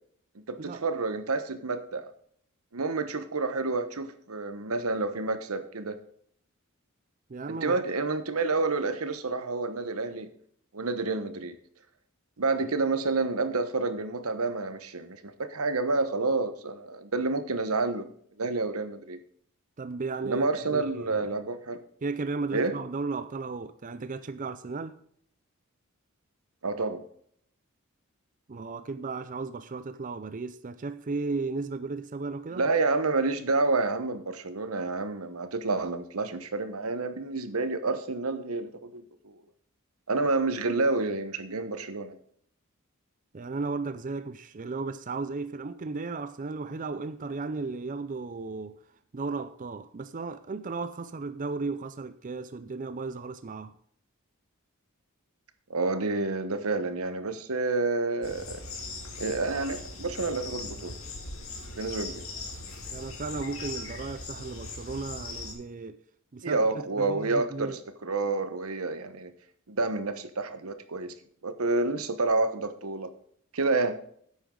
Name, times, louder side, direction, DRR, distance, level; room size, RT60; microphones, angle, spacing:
voice 1, 0.3-2.0 2.7-6.0 7.5-10.3 10.7-11.6 12.4-18.1 18.4-19.2 20.2-21.8 22.5-22.7 26.6-27.0 32.5-39.4 40.1-42.2 55.7-58.6 59.2-60.9 61.8-62.3 66.4-69.3 69.7-71.1 71.4-73.1 73.5-74.0, right 3 dB, 90° right, 1.1 m, -29 dB
voice 2, 7.3-7.8 12.7-12.8 19.8-21.3 22.0-25.0 28.5-32.7 43.3-48.8 49.1-53.8 62.9-66.0 66.3-67.8, right 3 dB, 35° right, 0.5 m, -35 dB
sound 1, 58.2-65.5, left 3 dB, 70° left, 2.5 m, -40 dB
10.0 x 8.2 x 3.8 m
head